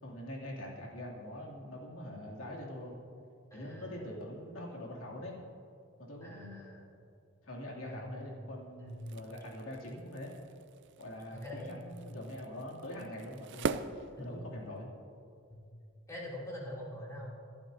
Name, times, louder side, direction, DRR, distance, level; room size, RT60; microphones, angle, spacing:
voice 1, 0.0-3.0 3.5-5.4 6.0-6.7 7.4-10.3 11.0-13.8 14.2-14.9, left 1 dB, 90° left, -2 dB, 2.7 m, -44 dB
voice 2, 3.5-4.1 6.2-6.9 7.8-8.1 8.8-9.0 11.3-12.0 14.2-14.4 15.5-15.6 16.1-17.3, left 1 dB, 15° left, -6 dB, 2.9 m, -44 dB
sound 1, 8.9-14.9, right 5 dB, 60° right, 0.5 m, -42 dB
24.5 x 11.5 x 2.7 m, 2.4 s
head